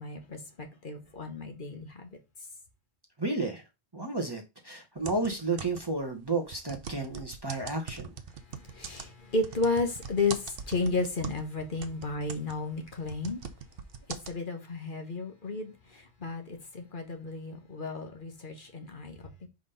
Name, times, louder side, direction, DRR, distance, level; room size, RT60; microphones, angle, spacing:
voice 1, 0.0-2.1 8.5-13.4 14.3-19.5, left 3 dB, 50° left, 1.3 m, -33 dB
voice 2, 3.2-3.6 3.9-8.1, right 3 dB, 25° right, 1.0 m, -32 dB
sound 1, 5.0-6.0 6.5-11.5 11.8-14.4, right 6 dB, 60° right, 0.9 m, -42 dB
5.1 x 3.6 x 5.5 m
omnidirectional pair, 1.1 m